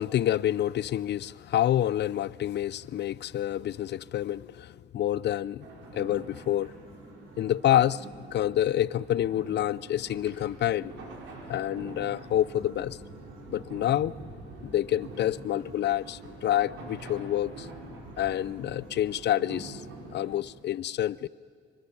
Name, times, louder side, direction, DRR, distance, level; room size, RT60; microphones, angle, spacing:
voice 1, 0.0-5.6 5.9-6.7 7.4-8.1 8.3-10.9 11.5-13.0 13.5-14.1 14.6-17.7 18.2-19.8 20.1-21.3, left 12 dB, 60° left, 0.5 m, -28 dB
sound 1, 5.6-20.4, right 2 dB, 80° right, 5.0 m, -45 dB
25.0 x 24.0 x 7.1 m
cardioid pair, 90°, 20 cm